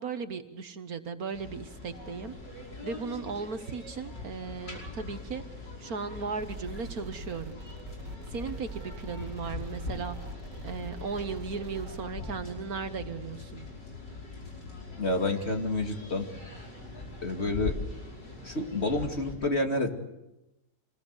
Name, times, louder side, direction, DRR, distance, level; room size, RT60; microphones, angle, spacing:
voice 1, 0.0-5.4 5.8-7.6 8.3-10.2 10.6-13.6, right 5 dB, 60° right, 9 dB, 1.6 m, -36 dB
sound 1, 1.3-19.3, left 3 dB, 90° left, 6.3 m, -42 dB
sound 2, 6.4-12.0, right 2 dB, 90° right, 2.7 m, -43 dB
voice 2, 15.0-16.3 17.2-17.8 18.4-19.9, left 2 dB, 40° left, 4 dB, 2.6 m, -29 dB
27.0 x 20.5 x 8.1 m, 0.94 s
omnidirectional pair, 1.8 m